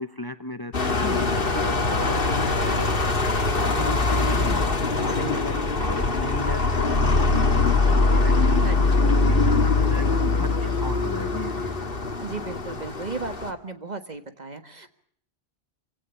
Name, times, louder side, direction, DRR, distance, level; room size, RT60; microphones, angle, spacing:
voice 1, 0.0-3.1 3.6-11.7, left 1 dB, 20° left, 10 dB, 1.0 m, -35 dB
sound 1, 0.7-13.5, left 3 dB, 60° left, 2.0 m, -22 dB
sound 2, 10.8-12.0, left 2 dB, 20° right, 3.2 m, -42 dB
voice 2, 12.2-14.9, right 3 dB, 40° right, 9 dB, 1.8 m, -35 dB
26.0 x 17.0 x 8.4 m, 0.63 s
omnidirectional pair, 1.1 m